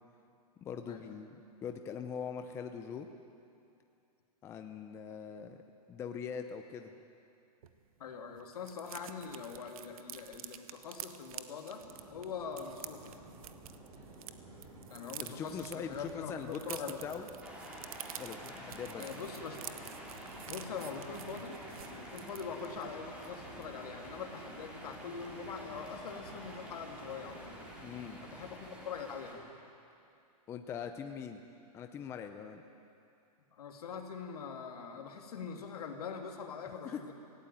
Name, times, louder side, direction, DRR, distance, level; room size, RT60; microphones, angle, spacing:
voice 1, 0.6-1.4 1.6-3.1 4.4-5.6 5.9-6.9 15.2-17.3 18.2-19.0 27.8-28.2 30.5-31.4 31.7-32.6 36.8-37.0, left 7 dB, 15° left, 6 dB, 0.6 m, -42 dB
sound 1, 7.6-7.7 8.0-8.1 8.3-14.3 14.6-22.8 23.2-23.4 23.6-23.9, right 10 dB, 60° right, 1.1 m, -49 dB
voice 2, 8.0-11.8 12.1-13.1 14.9-17.1 19.0-19.6 20.5-27.6 28.2-29.4 33.5-37.1, left 6 dB, 70° left, 3 dB, 2.7 m, -43 dB
Subway metro underground, 11.8-29.1, right 2 dB, 25° right, 6.1 m, -53 dB
sound 2, 17.4-29.3, equal, 5° right, 3.3 m, -49 dB
17.5 x 17.0 x 9.2 m, 2.6 s
hypercardioid pair, 160°, 20 cm